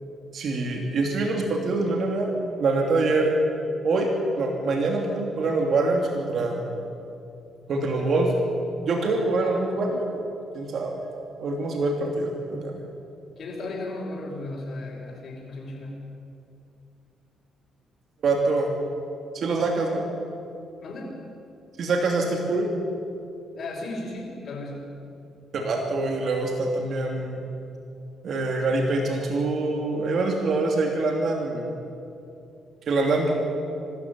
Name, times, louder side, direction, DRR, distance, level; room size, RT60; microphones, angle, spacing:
voice 1, 0.3-3.3 3.8-4.1 4.4-6.7 7.7-8.3 8.8-10.3 10.5-11.0 11.4-12.8 18.2-18.7 19.3-20.0 21.8-22.7 25.5-27.4 28.2-31.7 32.9-33.3, right 3 dB, 60° right, 1 dB, 2.9 m, -25 dB
voice 2, 13.4-16.0 20.8-21.1 23.6-24.9, left 2 dB, 60° left, -7 dB, 5.4 m, -35 dB
24.5 x 13.0 x 9.5 m, 2.6 s
cardioid pair, 90°, 0 cm